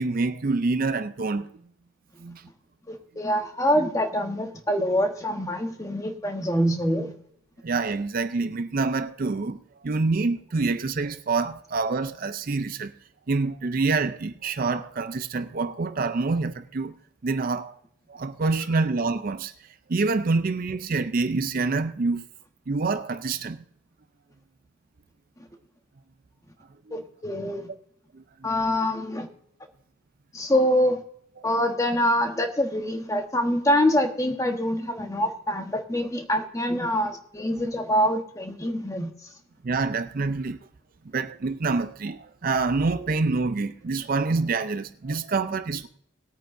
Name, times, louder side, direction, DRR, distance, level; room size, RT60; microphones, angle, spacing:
voice 1, 0.0-1.5 2.2-2.5 7.6-12.9 13.3-17.7 18.1-22.2 22.7-23.6 26.9-27.0 28.1-28.5 31.4-31.6 39.6-40.6 41.1-45.9, right 3 dB, 40° right, 0.4 m, -27 dB
voice 2, 2.9-7.1 26.9-27.7 28.4-29.3 30.3-31.0 31.4-39.1, equal, 15° left, 1.1 m, -25 dB
19.5 x 9.1 x 2.6 m
head